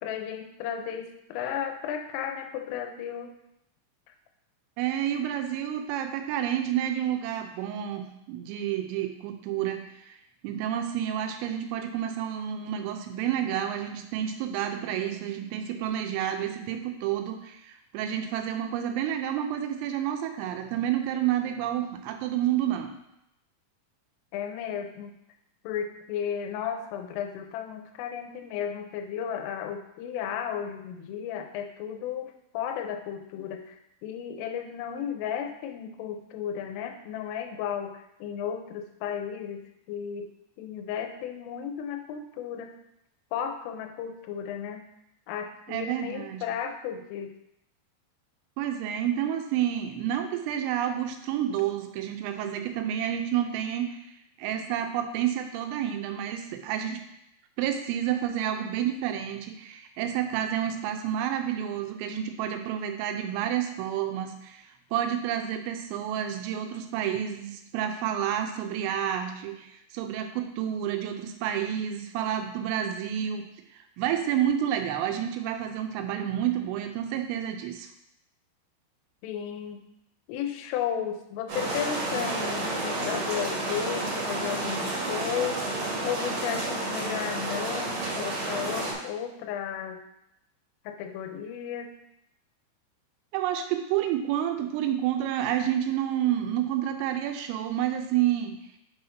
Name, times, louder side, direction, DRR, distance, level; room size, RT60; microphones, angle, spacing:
voice 1, 0.0-3.4 24.3-25.1 25.6-40.3 40.6-42.7 43.3-44.9 45.3-47.3 79.2-79.8 80.3-85.6 86.0-90.0 90.9-92.0, left 8 dB, 85° left, 6 dB, 3.1 m, -34 dB
voice 2, 4.8-10.2 10.4-22.9 45.7-46.4 48.6-54.0 54.4-57.0 57.6-64.6 64.9-73.5 74.0-77.9 93.3-98.6, right 10 dB, 90° right, 6 dB, 3.3 m, -29 dB
sound 1, 81.5-88.9, right 2 dB, 55° right, 2.5 m, -30 dB
7.2 x 2.9 x 5.6 m, 0.81 s
omnidirectional pair, 5.7 m